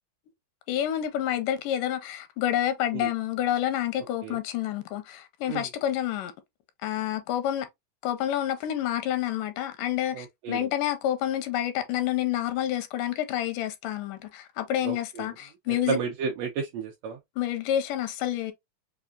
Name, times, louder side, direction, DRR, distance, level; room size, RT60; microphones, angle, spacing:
voice 1, 0.7-6.3 6.8-7.7 8.0-16.0 17.4-18.5, left 11 dB, 85° left, 2.2 m, -28 dB
voice 2, 10.1-10.7 14.8-15.3 15.7-17.2, right 6 dB, 80° right, 1.5 m, -32 dB
5.6 x 2.3 x 2.4 m
omnidirectional pair, 3.7 m